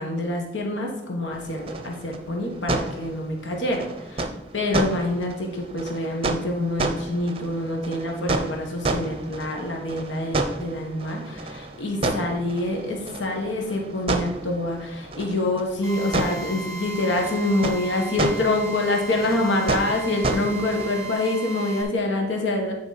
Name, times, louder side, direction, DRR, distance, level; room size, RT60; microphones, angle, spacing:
voice 1, 0.0-3.8 4.1-4.3 4.5-22.7, left 2 dB, 75° left, 1 dB, 1.4 m, -26 dB
sound 1, 1.3-21.1, right 2 dB, 30° right, 0.6 m, -31 dB
Drill, 15.8-21.8, right 3 dB, 15° left, 1.6 m, -36 dB
10.0 x 5.0 x 4.1 m, 0.89 s
head